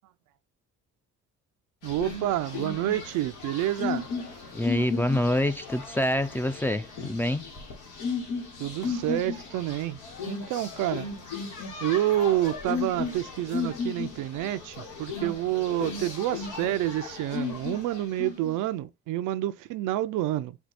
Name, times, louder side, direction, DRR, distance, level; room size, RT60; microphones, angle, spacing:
sound 1, 1.8-18.5, left 5 dB, 85° left, 1.3 m, -35 dB
voice 1, 1.8-4.1 8.6-11.1 11.8-20.6, right 13 dB, 90° right, 0.5 m, -28 dB
voice 2, 4.5-7.5, left 1 dB, 5° left, 0.4 m, -26 dB
4.5 x 2.3 x 4.1 m
cardioid pair, 90°, 30 cm